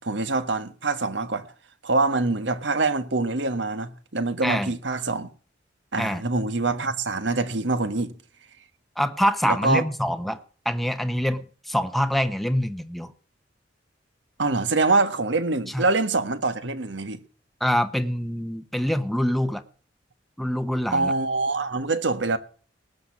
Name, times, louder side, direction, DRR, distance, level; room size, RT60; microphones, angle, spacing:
voice 1, 0.0-1.5 1.8-5.3 5.9-8.1 9.4-9.8 14.4-17.2 20.9-22.4, right 3 dB, 70° right, 1.5 m, -25 dB
voice 2, 4.4-4.7 6.0-6.2 9.0-10.4 10.6-13.1 15.7-15.8 17.6-19.6 20.4-21.1, equal, ahead, 0.8 m, -25 dB
19.5 x 6.6 x 7.2 m
head